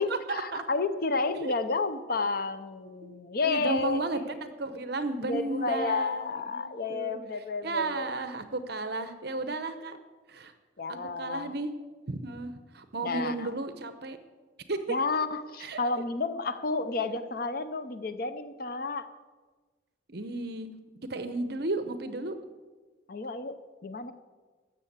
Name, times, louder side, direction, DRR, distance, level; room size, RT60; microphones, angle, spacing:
voice 1, 0.0-4.0 5.2-8.1 10.8-11.6 13.0-13.5 14.9-19.1 23.1-24.1, left 3 dB, 50° left, 11 dB, 0.7 m, -31 dB
voice 2, 3.5-7.2 7.6-10.0 10.3-10.5 10.9-11.7 12.1-14.2 14.7-15.0 15.6-15.8 20.1-20.7 21.1-22.3, right 2 dB, 55° right, 9 dB, 0.9 m, -33 dB
13.0 x 7.8 x 8.1 m, 1.3 s
head